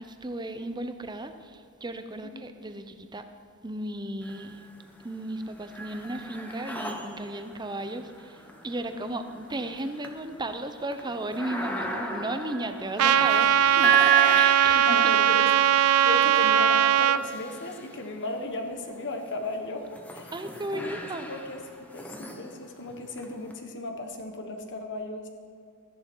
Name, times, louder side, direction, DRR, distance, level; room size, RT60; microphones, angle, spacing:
voice 1, 0.0-3.3 3.6-4.7 5.0-14.0 14.3-15.2 16.0-16.2 20.3-21.3, right 1 dB, 20° right, 8 dB, 0.7 m, -35 dB
sound 1, 4.2-4.9 5.2-18.4 19.1-23.5, right 6 dB, 5° left, 1.0 m, -33 dB
voice 2, 8.9-9.2 14.9-15.5 16.0-20.3 20.7-20.9 21.2-21.6 21.9-25.3, left 2 dB, 55° left, 4 dB, 1.4 m, -36 dB
Trumpet, 13.0-17.2, right 10 dB, 90° right, 0.4 m, -20 dB
13.5 x 10.5 x 4.6 m, 2.3 s
head